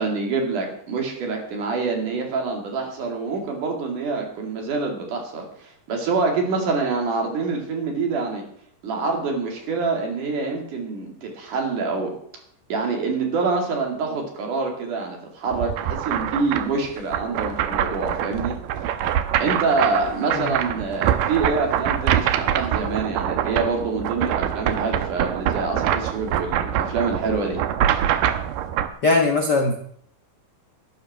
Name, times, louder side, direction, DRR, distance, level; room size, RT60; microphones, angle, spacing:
voice 1, 0.0-8.4 8.8-12.1 12.7-18.6 19.4-27.6, right 4 dB, 70° right, 1 dB, 4.0 m, -26 dB
sound 1, 15.5-28.9, right 10 dB, 90° right, 2.5 m, -24 dB
voice 2, 29.0-29.8, left 3 dB, 65° left, 3 dB, 1.0 m, -20 dB
12.0 x 10.5 x 6.1 m, 0.64 s
omnidirectional pair, 3.7 m